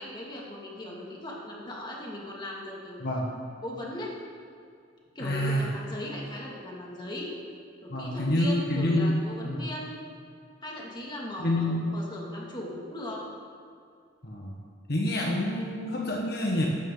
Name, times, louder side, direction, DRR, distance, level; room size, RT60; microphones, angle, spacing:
voice 1, 0.0-3.0 3.6-4.1 5.1-7.3 7.8-10.0 10.6-13.2, left 1 dB, 25° left, -3 dB, 2.4 m, -38 dB
voice 2, 5.2-5.6 7.9-9.6 11.4-12.0 14.2-14.6 14.9-16.7, left 1 dB, 60° left, -2 dB, 1.5 m, -27 dB
14.5 x 12.5 x 4.0 m, 2.3 s
head